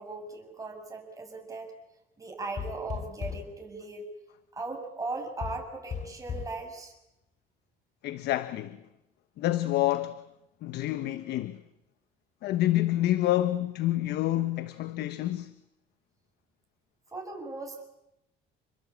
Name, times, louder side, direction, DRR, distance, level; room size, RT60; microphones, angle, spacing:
voice 1, 0.0-1.7 2.2-4.1 4.5-6.9 17.1-17.8, right 3 dB, 20° right, 7.5 m, -38 dB
sound 1, 2.6-3.6 5.4-6.6, left 6 dB, 45° left, 3.5 m, -37 dB
voice 2, 8.0-8.8 9.4-10.2 10.6-11.6 12.4-15.5, left 14 dB, 75° left, 1.1 m, -28 dB
28.5 x 21.5 x 8.7 m
cardioid pair, 110°, 17 cm